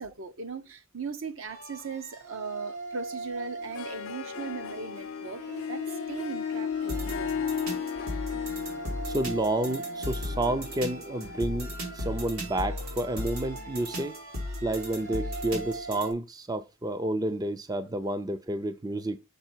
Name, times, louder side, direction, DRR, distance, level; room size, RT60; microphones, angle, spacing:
voice 1, 0.0-5.8 6.1-7.3, right 5 dB, 70° right, 0.9 m, -38 dB
sound 1, 1.4-16.1, equal, 90° right, 3.1 m, -37 dB
Harp, 3.6-12.2, left 7 dB, 70° left, 0.5 m, -36 dB
voice 2, 9.1-14.2 14.6-19.2, right 1 dB, 20° right, 0.4 m, -30 dB
6.7 x 4.8 x 4.4 m
head